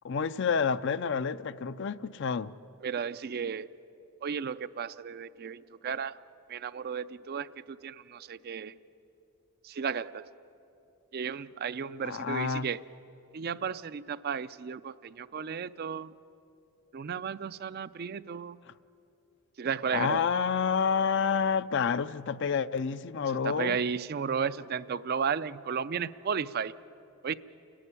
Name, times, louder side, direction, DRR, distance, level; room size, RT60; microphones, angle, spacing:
voice 1, 0.0-2.5 12.0-12.7 19.9-23.8, left 6 dB, 55° left, 14 dB, 0.5 m, -29 dB
voice 2, 2.8-3.7 4.2-6.2 6.5-8.7 9.6-10.3 11.1-12.8 13.3-16.1 16.9-18.6 19.6-20.3 23.4-26.7 27.2-27.3, right 6 dB, 45° right, 15 dB, 0.4 m, -34 dB
29.5 x 11.0 x 9.9 m, 2.9 s
head